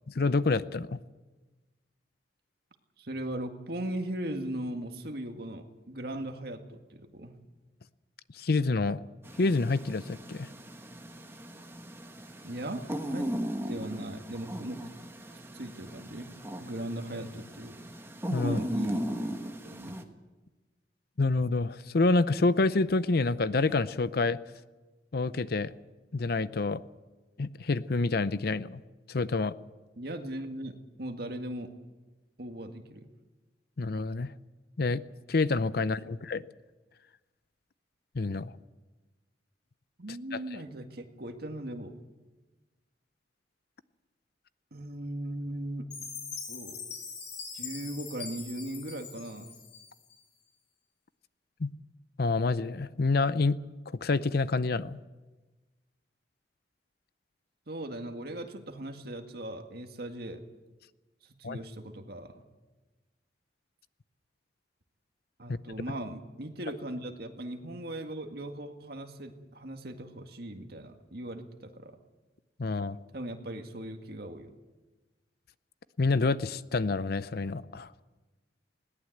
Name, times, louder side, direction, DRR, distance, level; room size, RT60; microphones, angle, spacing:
voice 1, 0.1-1.0 8.3-9.0 9.4-10.5 18.3-18.6 21.2-24.4 25.1-25.7 26.1-26.8 27.4-28.8 29.1-29.5 33.8-34.3 34.8-35.0 35.3-36.4 38.1-38.5 40.3-40.4 51.6-51.7 52.2-53.6 54.0-55.0 61.4-61.6 65.5-65.6 72.6-73.0 76.0-77.9, left 3 dB, 60° left, 15 dB, 0.6 m, -27 dB
voice 2, 3.0-7.3 12.4-12.8 13.1-13.3 13.6-14.8 15.3-16.3 16.6-17.8 18.4-19.4 19.6-20.0 30.0-31.7 32.4-33.1 35.8-36.1 40.0-41.9 44.7-45.9 46.5-46.8 47.5-49.5 57.7-60.4 61.4-62.4 65.4-72.0 73.1-74.5, right 1 dB, 60° right, 5 dB, 2.0 m, -38 dB
sound 1, 9.2-20.0, equal, 15° right, 1.5 m, -37 dB
Chime, 45.9-50.2, left 5 dB, 80° left, 5.7 m, -42 dB
20.5 x 18.0 x 8.0 m, 1.2 s
head